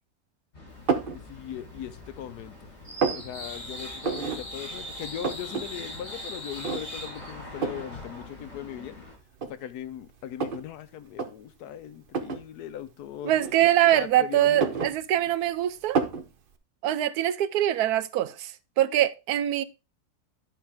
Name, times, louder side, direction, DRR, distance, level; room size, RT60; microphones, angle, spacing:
sound 1, 0.5-9.1, equal, 45° left, 6.7 m, -41 dB
sound 2, 0.9-1.2 1.7-2.4 2.7-3.3 4.0-4.4 4.7-4.8 5.0-5.7 6.0-6.1 6.6-7.1 7.6-7.9 8.7-8.8 9.3-10.7 11.1-11.3 12.1-12.5 13.4-14.1 14.4-15.5 16.0-16.3, right 5 dB, 45° right, 0.8 m, -29 dB
voice 1, 1.1-2.5 3.1-9.0 9.4-13.4 13.9-14.9, left 10 dB, 85° left, 1.3 m, -39 dB
voice 2, 13.2-16.0 16.8-18.5 18.8-19.6, right 12 dB, 85° right, 1.1 m, -23 dB
10.5 x 5.8 x 3.5 m
omnidirectional pair, 1.6 m